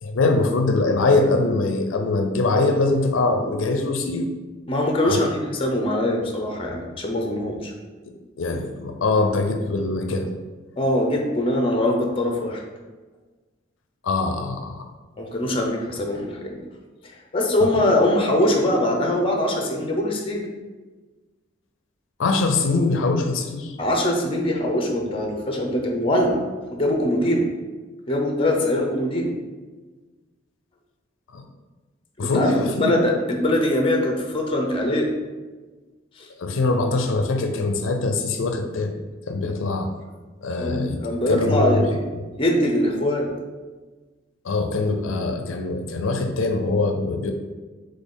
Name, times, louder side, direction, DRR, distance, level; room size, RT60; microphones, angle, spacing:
voice 1, 0.0-4.2 5.0-5.2 8.4-10.3 14.0-14.9 22.2-23.8 31.3-31.4 32.2-32.9 36.4-38.9 39.3-39.9 40.4-41.0 41.3-41.8 44.4-47.3, left 3 dB, 80° left, 5 dB, 0.5 m, -22 dB
voice 2, 4.7-7.7 10.8-12.6 15.2-16.6 17.3-20.4 23.8-26.4 26.7-27.5 28.1-29.3 32.3-32.5 32.8-35.1 36.2-36.3 40.6-42.0 42.4-43.3, left 1 dB, 30° left, 1 dB, 0.6 m, -22 dB
4.1 x 3.3 x 3.7 m, 1.3 s
head